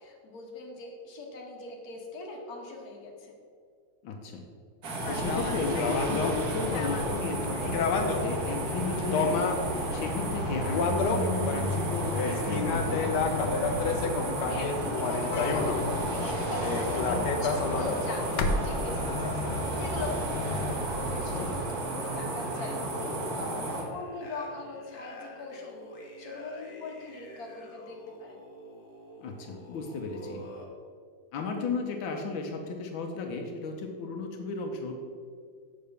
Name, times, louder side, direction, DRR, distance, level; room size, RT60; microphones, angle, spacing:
voice 1, 0.0-3.3 14.5-23.6 23.9-28.4, left 3 dB, 55° left, -1 dB, 1.7 m, -40 dB
voice 2, 4.0-4.4 5.1-13.1 21.2-21.5 29.2-30.4 31.3-34.9, left 4 dB, 90° left, 3 dB, 1.6 m, -34 dB
sound 1, 4.8-23.8, right 2 dB, 55° right, 1.6 m, -34 dB
sound 2, 5.0-21.6, left 3 dB, 70° left, 1.2 m, -30 dB
sound 3, 12.2-19.8 20.6-20.9 21.5-30.7, equal, 35° left, 1.0 m, -46 dB
6.8 x 4.5 x 6.6 m, 2.1 s
omnidirectional pair, 2.1 m